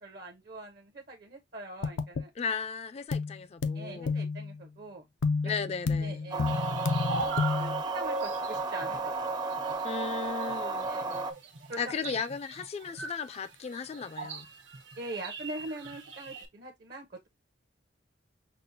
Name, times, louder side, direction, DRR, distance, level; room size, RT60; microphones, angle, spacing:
voice 1, 0.0-2.3 3.7-5.0 5.4-5.5 6.0-6.5 7.5-9.4 10.8-11.3 11.7-11.9 15.0-17.3, right 2 dB, 55° right, 0.7 m, -43 dB
sound 1, 1.8-2.2 3.1-3.4 3.6-4.6 5.2-7.8, left 4 dB, 90° left, 0.5 m, -30 dB
voice 2, 2.4-4.2 5.4-6.3 9.8-10.9 11.8-14.5, left 5 dB, 35° left, 0.3 m, -36 dB
sound 2, 6.3-11.3, right 3 dB, 25° right, 0.5 m, -33 dB
sound 3, 6.5-16.5, right 4 dB, 80° right, 0.9 m, -41 dB
5.9 x 2.0 x 2.6 m
head